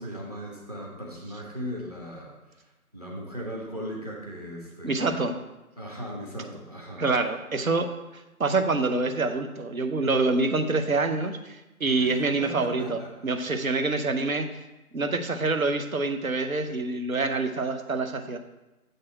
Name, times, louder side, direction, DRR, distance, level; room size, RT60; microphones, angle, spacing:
voice 1, 0.0-2.3 2.9-5.2 5.8-7.1 12.0-13.1 13.3-13.5, equal, 25° right, -1 dB, 0.9 m, -38 dB
voice 2, 4.8-5.4 7.0-7.9 8.4-14.5 14.9-18.4, right 3 dB, 65° right, 7 dB, 0.8 m, -26 dB
7.8 x 4.1 x 4.7 m, 1.0 s
figure-of-eight pair, 165°, 45 cm